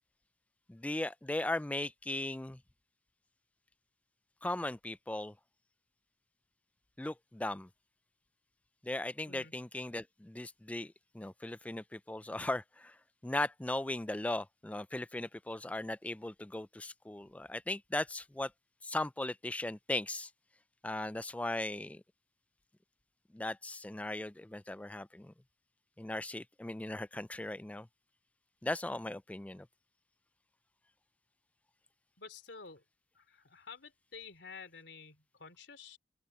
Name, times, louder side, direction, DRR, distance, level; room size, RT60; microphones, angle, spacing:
voice 1, 0.7-2.6 4.4-5.3 7.0-7.7 8.8-13.0 13.2-18.5 18.8-20.3 20.8-22.0 23.3-25.3 26.0-27.9 28.6-29.7, left 2 dB, 10° left, 0.3 m, -38 dB
voice 2, 32.2-32.8 33.1-36.0, left 5 dB, 90° left, 3.2 m, -50 dB
open air
head